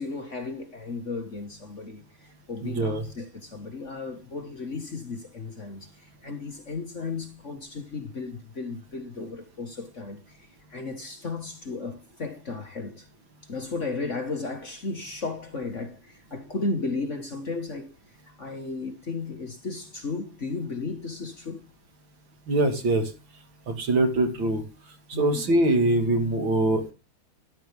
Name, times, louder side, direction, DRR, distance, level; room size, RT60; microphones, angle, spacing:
voice 1, 0.0-13.1 13.5-17.9 18.4-21.7 25.1-25.4, left 3 dB, 35° left, 1.8 m, -34 dB
voice 2, 2.6-3.0 22.5-23.1 23.7-24.6 25.2-26.9, right 2 dB, 65° right, 3.1 m, -23 dB
13.0 x 12.0 x 3.5 m
omnidirectional pair, 2.3 m